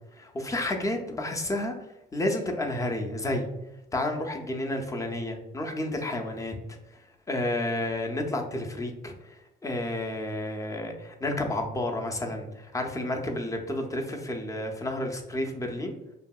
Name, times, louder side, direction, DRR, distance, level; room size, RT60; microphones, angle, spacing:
voice 1, 0.2-1.7 2.1-3.5 3.9-6.5 7.3-16.0, left 1 dB, 15° left, 2 dB, 0.5 m, -31 dB
2.7 x 2.6 x 2.3 m, 0.95 s
cardioid pair, 90°, 20 cm